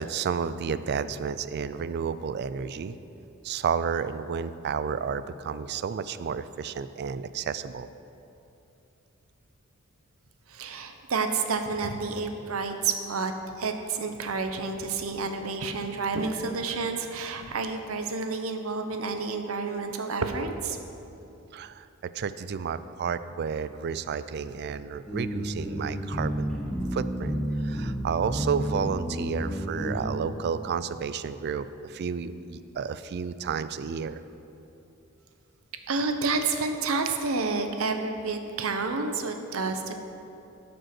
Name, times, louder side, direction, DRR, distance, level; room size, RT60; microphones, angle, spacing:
voice 1, 0.0-3.0 3.4-7.9 21.5-26.5 26.9-27.4 27.6-34.2, right 6 dB, 50° right, 14 dB, 0.3 m, -31 dB
voice 2, 10.5-13.3 13.6-20.8 35.9-40.0, right 4 dB, 85° right, 6 dB, 0.8 m, -29 dB
sound 1, 25.1-30.1, equal, 5° left, 1.3 m, -31 dB
11.5 x 5.4 x 6.0 m, 2.8 s
head